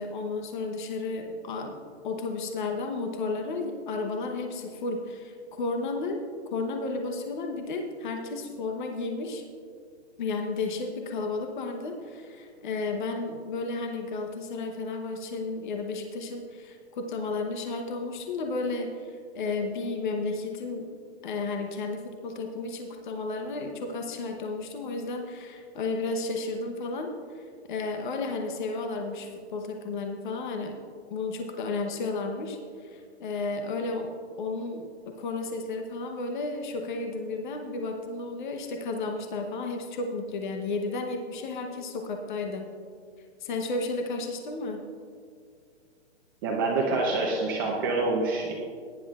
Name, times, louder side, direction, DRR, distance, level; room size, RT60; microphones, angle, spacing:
voice 1, 0.0-6.2 6.5-9.4 10.2-20.9 21.2-30.7 31.1-42.7 43.4-44.8, left 3 dB, 45° left, 4 dB, 1.0 m, -33 dB
voice 2, 46.4-48.5, right 3 dB, 20° right, -2 dB, 0.7 m, -26 dB
17.0 x 10.5 x 2.4 m, 2.2 s
hypercardioid pair, 165°, 34 cm